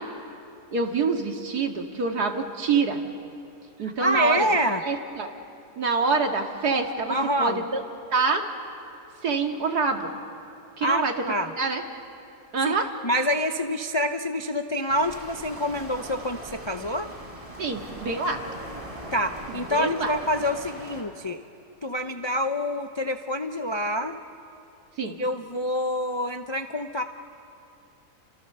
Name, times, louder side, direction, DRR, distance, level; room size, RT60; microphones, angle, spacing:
voice 1, 0.7-3.0 3.8-4.5 4.8-5.3 5.8-7.8 8.1-8.5 9.2-10.1 10.8-11.1 11.6-11.8 12.5-12.9 17.6-18.4 19.7-20.1 25.0-25.2, right 4 dB, 75° right, 3 dB, 2.5 m, -26 dB
voice 2, 3.8-4.8 7.1-7.6 10.8-11.5 12.6-12.7 13.0-17.1 19.1-21.4 21.8-24.2 25.0-27.0, equal, 35° left, 6 dB, 0.4 m, -27 dB
sound 1, 14.9-21.0, right 1 dB, 20° right, 3.8 m, -40 dB
29.5 x 25.5 x 6.8 m, 2.6 s
omnidirectional pair, 1.7 m